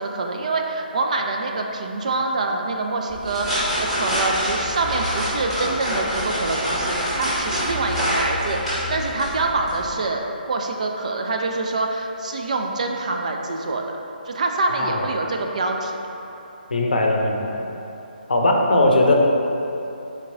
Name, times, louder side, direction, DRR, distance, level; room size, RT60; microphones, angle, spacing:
voice 1, 0.0-13.8 14.3-16.0, right 3 dB, 45° right, 2 dB, 0.4 m, -25 dB
sound 1, 3.1-10.0, equal, ahead, 1.4 m, -26 dB
voice 2, 14.7-15.1 16.7-17.7 18.3-19.1, left 1 dB, 65° left, 0 dB, 0.6 m, -19 dB
4.4 x 3.0 x 3.7 m, 3.0 s
figure-of-eight pair, 145°, 5 cm